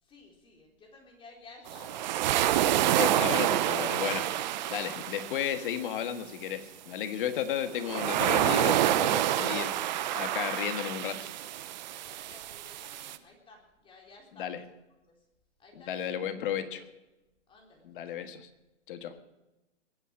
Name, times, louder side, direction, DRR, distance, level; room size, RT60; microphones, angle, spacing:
voice 1, 0.0-2.1 7.4-7.6 12.0-14.8 15.6-16.3 17.5-18.0, left 3 dB, 15° left, -1 dB, 3.9 m, -54 dB
sound 1, 1.7-5.8 7.8-13.2, right 12 dB, 40° right, 0.9 m, -28 dB
voice 2, 2.9-4.3 4.7-11.3 14.3-14.6 15.7-16.8 17.8-18.5 18.9-19.1, left 9 dB, 45° left, 8 dB, 1.7 m, -34 dB
21.0 x 9.0 x 7.6 m, 1.0 s
hypercardioid pair, 140°, 36 cm